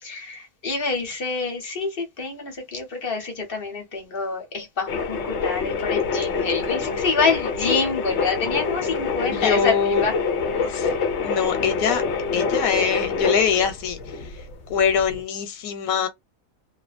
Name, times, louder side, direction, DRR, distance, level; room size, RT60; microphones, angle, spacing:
voice 1, 0.0-10.2 10.5-10.9, left 4 dB, 45° left, 1.1 m, -27 dB
sound 1, 4.9-15.2, left 5 dB, 60° left, 0.9 m, -26 dB
voice 2, 9.1-10.0 10.6-10.9 11.2-12.0 12.3-14.0 14.7-16.1, left 7 dB, 90° left, 1.1 m, -23 dB
2.9 x 2.1 x 2.4 m
omnidirectional pair, 1.4 m